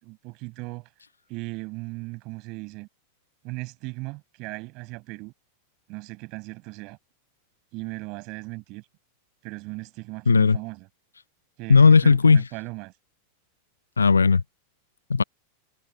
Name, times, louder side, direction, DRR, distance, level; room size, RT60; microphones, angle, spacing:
voice 1, 0.0-0.9 1.3-2.9 3.4-5.3 5.9-7.0 7.7-8.8 9.4-10.9 11.6-12.9, right 26 dB, 40° right, 6.1 m, -37 dB
voice 2, 10.3-10.6 11.7-12.4 14.0-14.4 15.1-15.2, left 5 dB, 75° left, 0.6 m, -16 dB
figure-of-eight pair, 90°, 0 cm